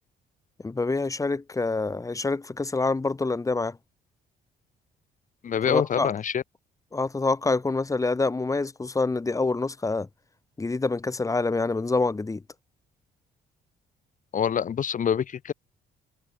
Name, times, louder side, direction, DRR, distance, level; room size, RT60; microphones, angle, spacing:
voice 1, 0.6-3.8 5.7-6.1 6.9-10.1 10.6-12.4, left 3 dB, 20° left, 2.7 m, -26 dB
voice 2, 5.4-6.4 14.3-15.5, left 8 dB, 50° left, 3.5 m, -26 dB
cardioid pair, 105°, 18 cm